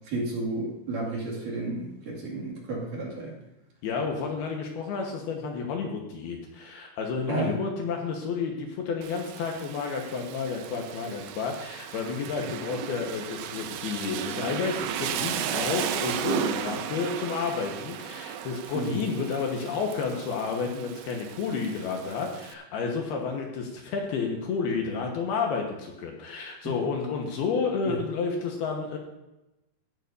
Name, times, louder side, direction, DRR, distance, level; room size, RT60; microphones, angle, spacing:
voice 1, 0.1-3.3 7.3-7.5 18.7-19.0 27.9-28.0, right 3 dB, 50° right, -5 dB, 3.6 m, -32 dB
voice 2, 3.8-29.0, left 5 dB, 70° left, 1 dB, 2.9 m, -31 dB
Rain, 9.0-22.5, right 10 dB, 80° right, 2.2 m, -35 dB
16.0 x 11.5 x 2.7 m, 0.96 s
omnidirectional pair, 5.2 m